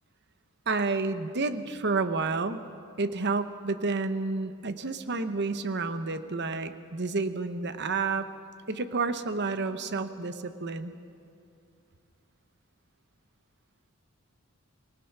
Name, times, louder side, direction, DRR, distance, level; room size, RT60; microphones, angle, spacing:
voice 1, 0.7-2.6 3.0-8.3 8.7-10.9, right 3 dB, 50° right, 10 dB, 1.0 m, -30 dB
25.5 x 19.5 x 6.0 m, 2.5 s
head